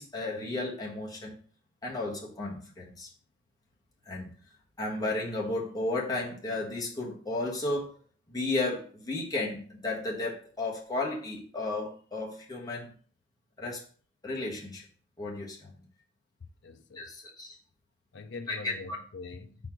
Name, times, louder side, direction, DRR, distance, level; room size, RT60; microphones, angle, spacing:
voice 1, 0.0-1.4 1.8-3.1 4.1-4.3 4.8-7.9 8.3-12.9 13.6-13.8 14.2-14.8 15.2-15.7 16.9-17.5 18.5-19.0, left 2 dB, 20° left, 1.4 m, -33 dB
voice 2, 16.6-17.2 18.1-19.6, left 4 dB, 60° left, 0.6 m, -44 dB
4.6 x 4.2 x 5.9 m
head